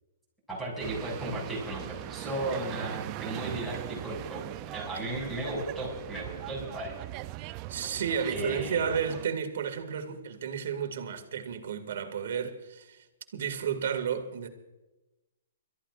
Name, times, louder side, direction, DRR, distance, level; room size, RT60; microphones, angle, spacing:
voice 1, 0.5-7.0 8.3-8.9, right 1 dB, ahead, 6.5 m, -35 dB
sound 1, 0.8-9.3, right 16 dB, 30° right, 0.5 m, -40 dB
voice 2, 7.7-13.1 13.3-14.5, right 7 dB, 65° right, 2.2 m, -32 dB
29.0 x 14.0 x 2.5 m
hypercardioid pair, 155°, 0 cm